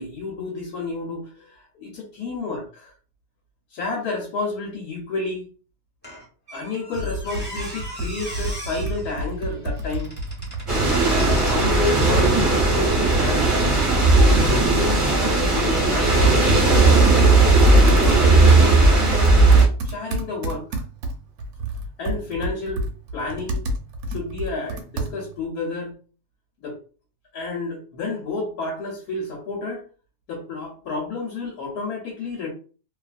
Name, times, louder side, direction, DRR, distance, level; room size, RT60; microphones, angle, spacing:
voice 1, 0.0-2.9 3.7-5.5 6.5-10.1 11.1-12.3 12.6-13.5 14.0-17.1 17.8-20.8 22.0-22.8 23.1-23.6 24.1-25.9 26.6-26.8 27.3-29.8 30.3-32.5, left 3 dB, 70° left, -1 dB, 1.2 m, -30 dB
Squeak, 6.0-12.2 12.8-13.0, equal, 5° left, 1.1 m, -39 dB
Computer keyboard, 6.9-25.4, right 1 dB, 70° right, 1.0 m, -31 dB
sound 1, 10.7-19.7, right 2 dB, 25° right, 0.7 m, -16 dB
2.7 x 2.4 x 2.4 m, 0.37 s
omnidirectional pair, 1.7 m